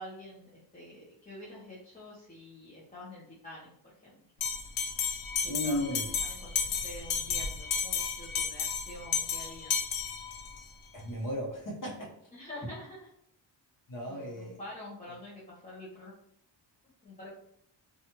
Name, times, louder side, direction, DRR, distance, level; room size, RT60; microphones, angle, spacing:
voice 1, 0.0-3.7 4.0-4.2 5.4-9.8 12.3-13.1 14.1-16.1 17.0-17.3, left 1 dB, 20° left, -8 dB, 0.6 m, -47 dB
Bell, 4.4-10.6, left 6 dB, 85° left, 0.6 m, -33 dB
voice 2, 5.4-6.0 10.9-12.1 13.9-14.6, left 1 dB, 45° left, -3 dB, 0.8 m, -35 dB
3.0 x 2.3 x 2.8 m, 0.70 s
wide cardioid pair, 135°, 45 cm